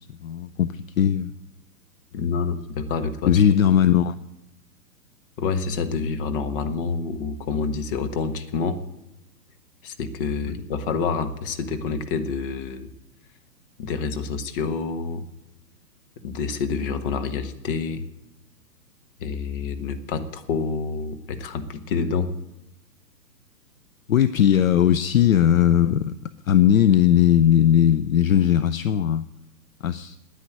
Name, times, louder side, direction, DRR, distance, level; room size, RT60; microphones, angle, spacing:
voice 1, 0.1-1.3 2.1-2.4 3.3-4.1 10.5-10.6 24.1-26.2 26.5-29.3 29.8-30.2, left 10 dB, 55° left, 14 dB, 0.6 m, -19 dB
voice 2, 2.1-3.4 5.4-8.8 9.8-12.9 13.8-15.2 16.2-18.0 19.2-22.3, left 5 dB, 35° left, 9 dB, 1.3 m, -28 dB
9.9 x 9.8 x 9.1 m, 0.92 s
figure-of-eight pair, 125°, 50 cm